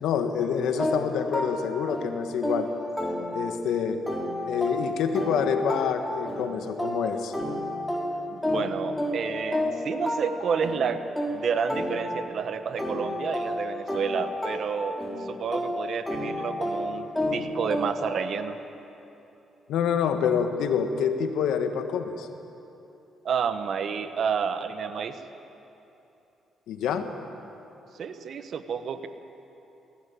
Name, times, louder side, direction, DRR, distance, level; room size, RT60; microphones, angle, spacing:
voice 1, 0.0-2.7 3.3-4.0 4.5-7.3 19.7-22.3 26.7-27.1, left 7 dB, 85° left, 7 dB, 1.6 m, -27 dB
sound 1, 0.8-3.7 4.1-12.4 12.8-18.2, left 1 dB, 10° left, 3.7 m, -31 dB
voice 2, 8.3-18.6 23.2-25.2 28.0-29.1, right 6 dB, 60° right, 9 dB, 1.3 m, -30 dB
21.0 x 16.5 x 8.7 m, 2.9 s
cardioid pair, 90°, 0 cm